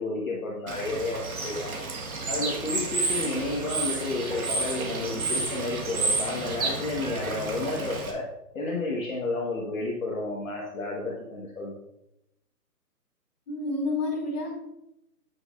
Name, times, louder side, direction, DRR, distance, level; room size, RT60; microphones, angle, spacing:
voice 1, 0.0-1.7 2.3-8.3 8.5-11.7, left 2 dB, 55° left, -3 dB, 1.5 m, -31 dB
Bird / Water, 0.7-8.1, right 3 dB, 60° right, 1.6 m, -31 dB
voice 2, 13.5-14.5, left 2 dB, 25° left, -6 dB, 3.0 m, -29 dB
9.3 x 8.5 x 2.5 m, 0.84 s
hypercardioid pair, 180°, 48 cm